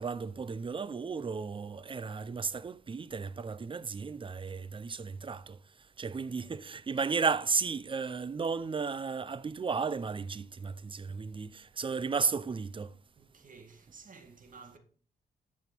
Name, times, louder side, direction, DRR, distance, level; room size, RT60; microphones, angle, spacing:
voice 1, 0.0-13.0, right 5 dB, 30° right, 0.5 m, -34 dB
voice 2, 13.2-14.8, right 4 dB, 50° right, 2.1 m, -53 dB
11.0 x 6.3 x 4.5 m
cardioid pair, 105°, 18 cm